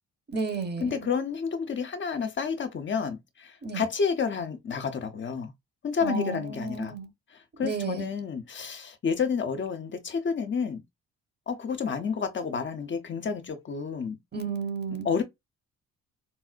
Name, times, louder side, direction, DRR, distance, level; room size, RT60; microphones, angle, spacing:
voice 1, 0.3-0.9 3.6-3.8 6.0-7.1 7.6-8.1 14.3-15.1, right 4 dB, 35° right, 1.0 m, -32 dB
voice 2, 0.8-5.5 5.8-6.9 7.6-10.8 11.5-14.2 15.0-15.2, left 6 dB, 40° left, 0.6 m, -30 dB
4.2 x 2.0 x 2.4 m
cardioid pair, 90°, 30 cm